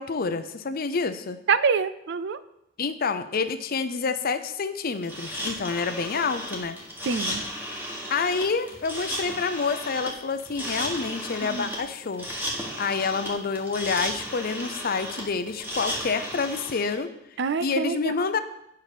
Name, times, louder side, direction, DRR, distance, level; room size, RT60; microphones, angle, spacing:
voice 1, 0.0-1.4 2.8-6.8 8.1-17.1 17.6-18.4, left 4 dB, 50° left, 11 dB, 0.6 m, -28 dB
voice 2, 1.5-2.4 7.1-7.4 11.5-11.7 17.4-18.1, right 5 dB, 60° right, 14 dB, 0.4 m, -25 dB
sound 1, 5.0-16.9, equal, 10° right, 1.7 m, -34 dB
9.1 x 5.7 x 4.9 m, 0.81 s
head